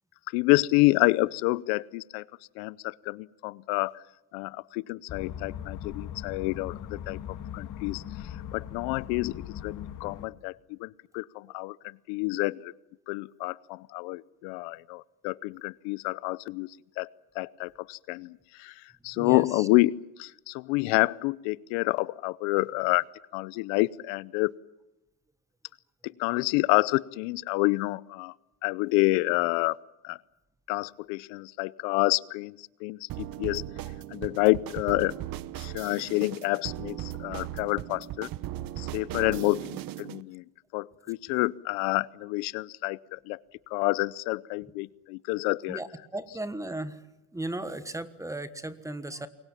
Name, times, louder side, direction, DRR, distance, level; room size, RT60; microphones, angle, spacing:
voice 1, 0.3-2.2 2.6-4.0 4.3-12.7 13.1-17.1 17.3-23.0 23.3-24.5 26.0-28.3 28.6-29.8 30.0-30.2 30.7-33.6 34.1-35.2 35.6-38.3 38.8-40.4 40.7-43.4 43.7-45.8, left 22 dB, 75° left, 21 dB, 0.8 m, -28 dB
sound 1, 5.1-10.3, left 10 dB, 40° left, 2.0 m, -39 dB
voice 2, 19.1-19.7 45.7-47.0 47.3-49.3, right 1 dB, 5° right, 12 dB, 1.4 m, -36 dB
sound 2, 33.1-40.2, right 13 dB, 45° right, 1.0 m, -38 dB
28.5 x 23.0 x 7.4 m, 0.95 s
cardioid pair, 135°, 50 cm